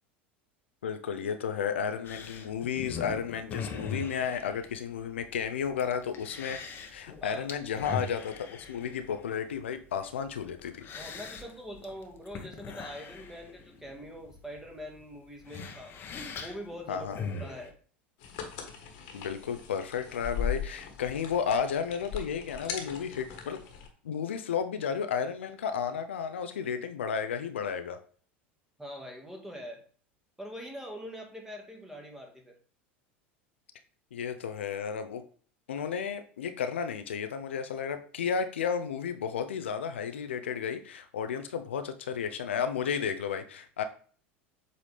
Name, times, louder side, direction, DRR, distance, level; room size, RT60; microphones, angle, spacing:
voice 1, 0.8-6.6 6.9-10.9 16.9-17.2 19.1-23.6 24.0-28.0 34.1-35.2 35.7-43.8, left 7 dB, 80° left, 8 dB, 0.6 m, -33 dB
sound 1, 2.0-17.7, left 5 dB, 35° left, 1.1 m, -42 dB
voice 2, 7.2-7.5 10.9-15.9 16.4-17.7 28.8-29.8 30.4-32.6, equal, 5° right, 2 dB, 1.8 m, -43 dB
sound 2, 18.2-23.9, left 7 dB, 60° left, 1.5 m, -39 dB
7.6 x 4.1 x 3.4 m, 0.43 s
hypercardioid pair, 80°, 6 cm